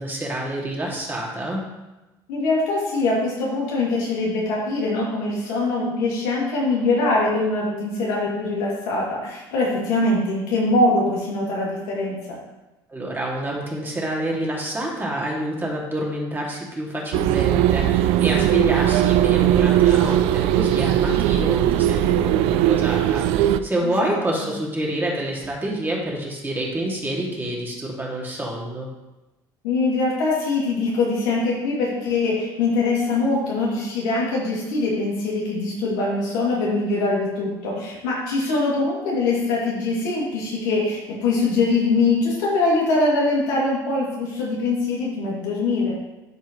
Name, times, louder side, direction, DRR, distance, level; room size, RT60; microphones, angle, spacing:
voice 1, 0.0-1.6 12.9-28.9, right 1 dB, 20° right, -3 dB, 2.3 m, -27 dB
voice 2, 2.3-12.4 24.0-24.5 29.6-46.0, left 3 dB, 85° left, -5 dB, 2.6 m, -23 dB
sound 1, 17.1-23.6, right 12 dB, 75° right, 0.4 m, -19 dB
11.5 x 4.5 x 3.1 m, 1.0 s
supercardioid pair, 80°, 10 cm